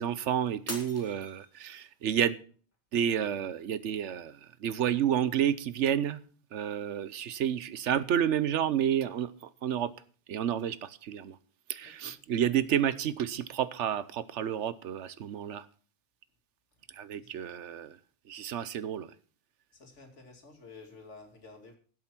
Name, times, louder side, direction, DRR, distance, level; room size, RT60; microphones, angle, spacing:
voice 1, 0.0-2.4 2.9-6.2 6.5-9.3 9.6-9.9 10.3-11.4 11.7-15.6 17.0-18.0 18.3-19.1, right 9 dB, 75° right, 16 dB, 1.1 m, -30 dB
Shatter, 0.7-2.0 2.5-2.9 3.5-3.6, left 1 dB, 10° left, 2.1 m, -42 dB
voice 2, 11.8-12.2 17.2-17.3 19.7-21.8, left 3 dB, 80° left, 3 dB, 2.7 m, -51 dB
12.5 x 7.7 x 5.9 m, 0.42 s
omnidirectional pair, 1.2 m